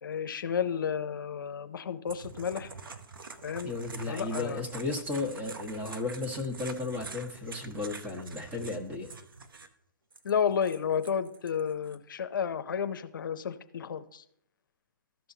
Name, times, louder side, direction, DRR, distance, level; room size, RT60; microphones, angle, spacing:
voice 1, 0.0-2.7 3.4-3.7 4.0-4.6 10.2-14.2, left 7 dB, 70° left, 10 dB, 0.6 m, -31 dB
sound 1, 2.1-9.7 10.1-11.9, right 4 dB, 90° right, 0.8 m, -45 dB
voice 2, 3.6-9.1, left 3 dB, 15° right, 4 dB, 1.2 m, -34 dB
14.0 x 5.6 x 2.8 m, 0.71 s
hypercardioid pair, 145°, 11 cm